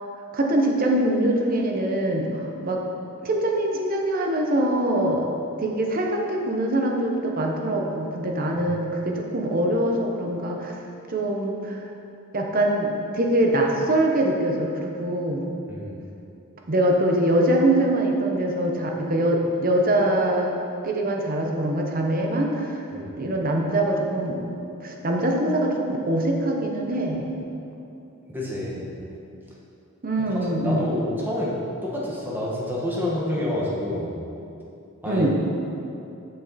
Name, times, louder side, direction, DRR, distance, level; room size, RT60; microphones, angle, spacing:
voice 1, 0.3-2.8 3.2-5.2 5.6-10.8 11.1-11.8 12.3-15.5 16.7-20.5 20.8-22.8 23.2-24.4 24.8-27.3 30.0-30.9 35.0-35.3, right 1 dB, 40° right, 1 dB, 0.9 m, -23 dB
voice 2, 28.3-28.9 30.2-30.3 30.6-31.6 31.8-34.1 35.0-35.2, left 1 dB, 10° right, -5 dB, 1.3 m, -28 dB
7.6 x 6.4 x 4.1 m, 2.7 s
head